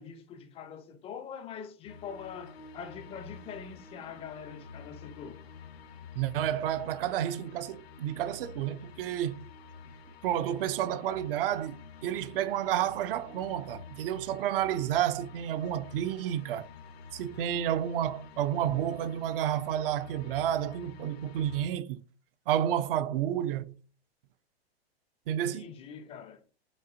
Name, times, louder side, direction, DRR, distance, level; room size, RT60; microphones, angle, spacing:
voice 1, 0.0-5.4 25.3-26.4, left 7 dB, 20° left, 0.4 m, -44 dB
sound 1, 1.8-21.7, left 5 dB, 75° left, 0.7 m, -49 dB
voice 2, 6.2-9.5 10.2-16.7 17.1-22.0 22.5-23.7 25.3-25.7, right 11 dB, 60° right, 0.5 m, -30 dB
5.3 x 2.7 x 2.6 m
hypercardioid pair, 115°, 31 cm